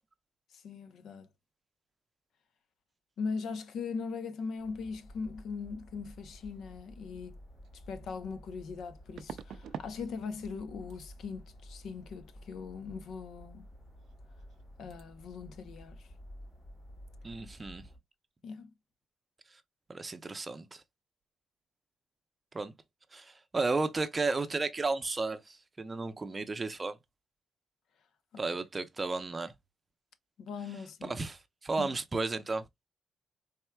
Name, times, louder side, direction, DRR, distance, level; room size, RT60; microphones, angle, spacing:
voice 1, 0.5-1.3 3.2-7.4 7.9-13.7 14.8-16.1 18.4-18.7 30.4-31.1 31.8-32.0, left 5 dB, 75° left, 0.6 m, -40 dB
sound 1, 4.6-18.0, equal, 35° left, 2.8 m, -52 dB
sound 2, 7.6-7.7 9.2-10.0 10.2-10.6 10.9-11.1 14.0-14.1 14.4-14.6 14.9-15.0, right 8 dB, 75° right, 0.4 m, -45 dB
voice 2, 17.2-17.8 19.9-20.8 22.5-22.7 23.1-27.0 28.4-29.5 31.0-32.6, right 3 dB, 25° right, 0.6 m, -33 dB
4.4 x 3.5 x 2.2 m
cardioid pair, 145°, 0 cm